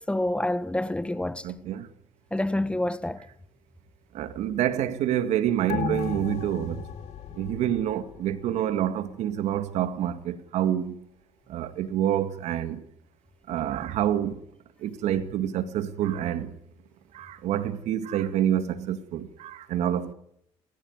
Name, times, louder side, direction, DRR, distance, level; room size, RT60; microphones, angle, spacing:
voice 1, 0.1-1.4 2.3-3.2, left 1 dB, 10° left, 1.4 m, -27 dB
voice 2, 1.4-1.9 4.1-6.8 7.3-11.0 11.5-12.8 13.5-14.4 14.8-16.6 17.1-20.1, right 10 dB, 75° right, 2.0 m, -27 dB
sound 1, 5.7-8.6 8.9-9.0, left 7 dB, 70° left, 3.0 m, -35 dB
29.5 x 15.0 x 9.6 m
supercardioid pair, 65°, 12 cm